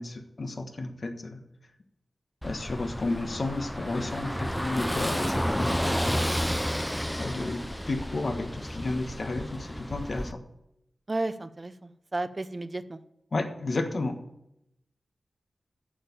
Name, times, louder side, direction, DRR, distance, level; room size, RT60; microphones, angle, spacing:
voice 1, 0.0-1.4 2.4-6.4 7.1-10.4 13.3-14.2, left 2 dB, 55° left, 6 dB, 1.3 m, -32 dB
Car passing by / Engine, 2.4-10.3, equal, 5° left, 0.5 m, -31 dB
voice 2, 11.1-13.0, right 2 dB, 35° right, 12 dB, 0.7 m, -33 dB
8.6 x 7.2 x 7.2 m, 0.83 s
cardioid pair, 60°, 0 cm